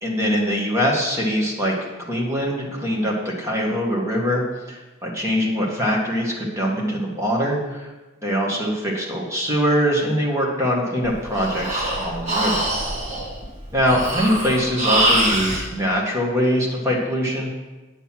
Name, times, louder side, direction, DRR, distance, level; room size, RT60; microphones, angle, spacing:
voice 1, 0.0-1.8 2.1-4.4 4.7-7.9 8.2-12.6 13.7-17.5, equal, 15° right, -3 dB, 1.7 m, -23 dB
Breathing, 11.0-15.6, right 1 dB, 35° right, 2.1 m, -23 dB
9.1 x 6.8 x 5.9 m, 1.2 s
head